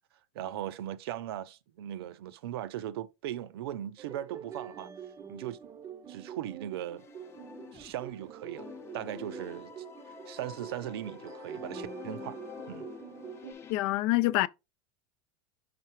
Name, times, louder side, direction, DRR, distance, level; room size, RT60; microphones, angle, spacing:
voice 1, 0.3-4.9 5.3-5.6 6.1-7.1 7.7-8.7 8.9-9.7 10.1-12.4 12.7-12.9, right 12 dB, 85° right, 0.6 m, -38 dB
sound 1, 4.0-13.5, right 8 dB, 25° right, 0.6 m, -46 dB
sound 2, 7.0-8.3 8.6-13.7, left 6 dB, 20° left, 0.7 m, -47 dB
voice 2, 13.7-14.5, left 18 dB, 55° left, 0.4 m, -26 dB
5.9 x 5.5 x 3.0 m
supercardioid pair, 145°, 13 cm